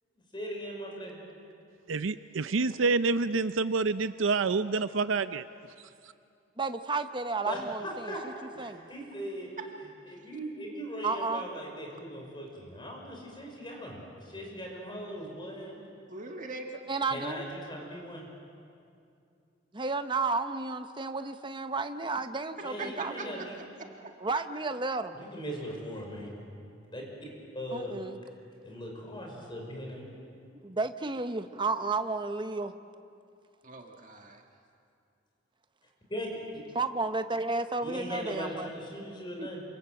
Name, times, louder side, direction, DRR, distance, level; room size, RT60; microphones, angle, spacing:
voice 1, 0.3-1.2 7.5-8.2 8.5-9.5 10.1-15.8 17.1-18.3 22.6-23.5 25.1-26.3 26.9-27.3 27.5-28.0 28.6-30.0 36.1-36.3 37.8-39.6, equal, 25° left, 0 dB, 5.7 m, -39 dB
voice 2, 1.9-5.4, right 4 dB, 80° right, 12 dB, 0.6 m, -27 dB
voice 3, 6.6-8.3 8.6-8.9 11.0-11.4 16.9-17.4 19.7-23.5 24.2-25.2 27.7-28.2 30.6-32.7 36.7-38.7 39.4-39.5, right 3 dB, 25° right, 9 dB, 0.9 m, -32 dB
voice 4, 16.1-16.7 22.8-23.6 33.6-34.4, right 3 dB, 40° right, 2 dB, 1.8 m, -41 dB
28.0 x 26.5 x 7.8 m, 2.5 s
head